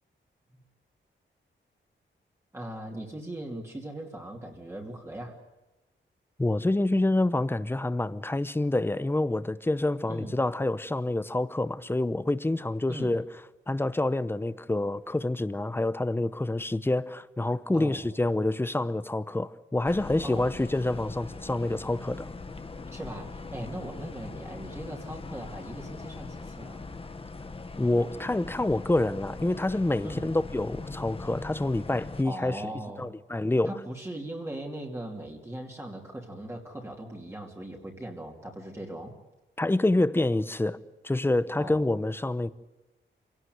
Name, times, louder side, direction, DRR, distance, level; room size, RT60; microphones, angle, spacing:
voice 1, 2.5-5.4 10.1-10.4 12.9-13.2 17.7-18.0 20.2-20.5 22.9-26.9 30.0-30.3 32.2-33.1 33.6-39.1 41.6-41.9, right 1 dB, 15° right, 2.7 m, -39 dB
voice 2, 6.4-13.2 13.7-22.3 27.8-32.6 33.0-33.7 39.6-40.8 41.0-42.5, left 2 dB, 10° left, 0.7 m, -27 dB
sound 1, 19.8-32.2, left 3 dB, 30° left, 1.4 m, -41 dB
27.0 x 17.5 x 9.4 m
wide cardioid pair, 175°, 20 cm